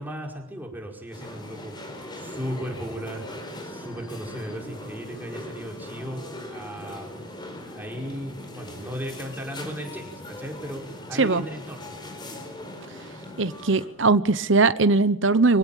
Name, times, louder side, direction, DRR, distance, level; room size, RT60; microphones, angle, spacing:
voice 1, 0.0-1.7 2.1-3.3 3.6-6.2 6.5-7.1 7.7-12.0, equal, 10° right, 0 dB, 5.0 m, -36 dB
sound 1, 1.1-13.9, left 1 dB, 25° left, 4.6 m, -40 dB
voice 2, 13.4-15.6, right 3 dB, 70° right, 13 dB, 1.0 m, -20 dB
25.0 x 17.0 x 9.1 m, 0.79 s
head